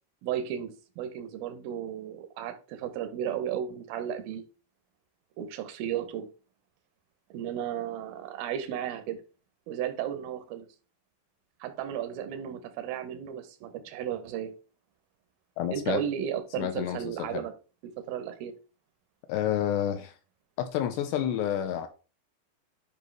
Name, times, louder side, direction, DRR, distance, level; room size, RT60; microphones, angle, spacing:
voice 1, 0.2-4.4 5.4-6.3 7.3-9.2 9.7-10.7 11.6-14.5 15.7-17.5 18.1-18.5, right 10 dB, 85° right, 2.1 m, -34 dB
voice 2, 15.6-16.0 16.6-17.4 19.3-20.1 20.6-21.9, left 10 dB, 85° left, 2.5 m, -29 dB
11.0 x 5.4 x 3.2 m
omnidirectional pair, 5.4 m